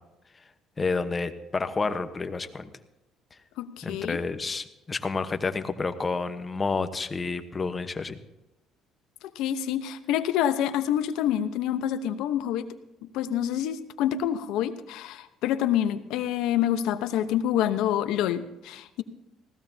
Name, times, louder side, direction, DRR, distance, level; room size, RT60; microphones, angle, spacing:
voice 1, 0.8-2.7 3.8-8.2, left 4 dB, 25° left, 10 dB, 1.1 m, -30 dB
voice 2, 3.6-4.2 9.3-12.7 13.1-19.0, left 10 dB, 80° left, 10 dB, 0.9 m, -27 dB
20.0 x 17.0 x 2.8 m, 0.96 s
cardioid pair, 105°, 0 cm